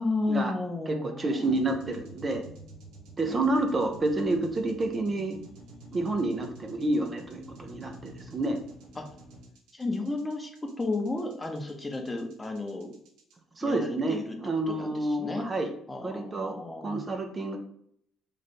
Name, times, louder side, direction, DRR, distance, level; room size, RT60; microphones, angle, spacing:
voice 1, 0.0-1.6 3.3-3.5 8.9-9.1 9.7-13.0 13.6-14.4 14.7-15.5 15.9-17.0, left 3 dB, 20° left, 3 dB, 0.8 m, -33 dB
voice 2, 0.9-2.4 3.2-5.4 5.9-8.6 13.6-15.7 16.0-16.5 16.8-17.6, right 2 dB, 30° right, 4 dB, 0.6 m, -29 dB
sound 1, 1.4-13.3, right 1 dB, 85° right, 0.9 m, -49 dB
3.2 x 2.6 x 4.2 m, 0.67 s
supercardioid pair, 80°, 0 cm